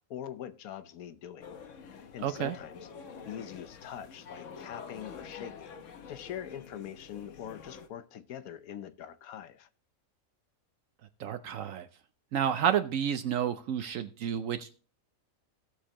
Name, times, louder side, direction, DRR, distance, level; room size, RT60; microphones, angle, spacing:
voice 1, 0.1-1.5 1.9-2.9 3.2-9.7, left 10 dB, 85° left, 1.2 m, -43 dB
sound 1, 1.4-7.9, left 6 dB, 65° left, 1.2 m, -47 dB
voice 2, 2.2-2.5 11.2-11.9 12.3-14.7, right 9 dB, 70° right, 1.0 m, -30 dB
17.0 x 6.5 x 2.9 m
omnidirectional pair, 1.5 m